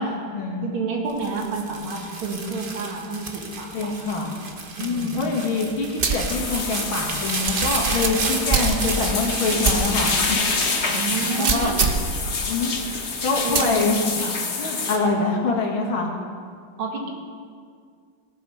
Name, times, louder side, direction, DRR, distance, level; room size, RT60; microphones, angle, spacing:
voice 1, 0.0-0.7 3.7-4.3 4.8-10.1 11.4-11.7 12.5-12.7 13.2-14.2 14.6-16.1, left 3 dB, 70° left, 0 dB, 2.6 m, -25 dB
voice 2, 0.6-4.0 4.8-5.4 10.9-11.8 13.4-13.8 14.2-14.4 16.8-17.1, right 4 dB, 75° right, 0 dB, 2.7 m, -29 dB
sound 1, 1.1-12.5 13.0-13.6, right 3 dB, 30° right, 1.1 m, -32 dB
sound 2, 6.0-6.3 6.8-6.9 7.5-9.1 9.6-9.9 10.3-10.4 11.4-12.1 13.5-13.8, right 5 dB, 45° right, 0.7 m, -23 dB
sound 3, 6.3-15.0, left 4 dB, 40° left, 1.2 m, -27 dB
18.5 x 8.3 x 5.6 m, 2.1 s
omnidirectional pair, 2.3 m